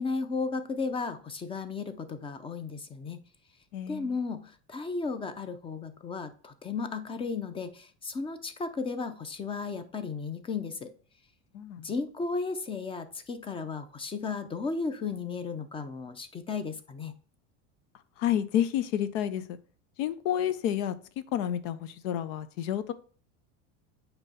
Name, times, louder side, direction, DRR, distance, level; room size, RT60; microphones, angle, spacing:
voice 1, 0.0-3.2 3.9-10.9 11.8-17.2, left 4 dB, 15° left, 10 dB, 0.5 m, -34 dB
voice 2, 3.7-4.2 11.5-11.9 18.2-19.4 20.0-20.9 21.3-22.9, left 10 dB, 80° left, 13 dB, 0.8 m, -29 dB
8.8 x 3.0 x 4.2 m, 0.42 s
supercardioid pair, 145°, 37 cm